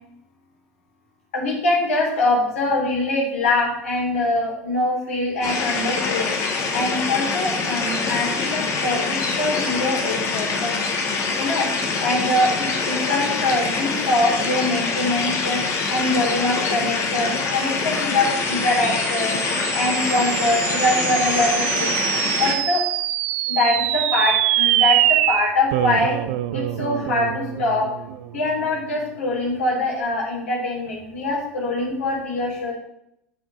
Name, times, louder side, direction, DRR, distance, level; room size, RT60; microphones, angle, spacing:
voice 1, 1.3-6.3 6.7-10.7 11.3-11.7 12.0-15.6 15.9-19.4 19.7-22.0 22.4-22.8 23.5-26.2 26.5-32.7, left 2 dB, 80° left, -3 dB, 3.5 m, -23 dB
sound 1, 5.4-22.6, left 4 dB, 45° left, 1.6 m, -25 dB
sound 2, 18.3-28.9, right 14 dB, 65° right, 0.4 m, -24 dB
7.4 x 5.7 x 4.9 m, 0.77 s
hypercardioid pair, 80°, 7 cm